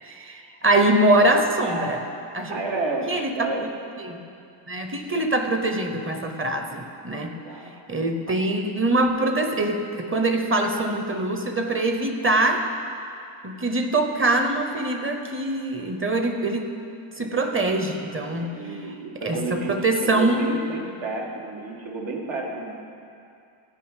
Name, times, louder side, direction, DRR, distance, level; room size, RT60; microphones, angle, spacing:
voice 1, 0.0-2.0 2.3-2.6 3.1-3.3 4.0-4.2 4.7-7.4 7.9-12.7 13.4-16.7 17.2-18.6 19.2-20.5, right 2 dB, 25° right, 5 dB, 0.9 m, -23 dB
voice 2, 1.6-2.0 2.5-3.7 7.3-7.7 18.3-19.7 20.0-22.8, right 3 dB, 75° right, -1 dB, 1.9 m, -31 dB
13.5 x 5.3 x 9.0 m, 2.5 s
wide cardioid pair, 165°, 47 cm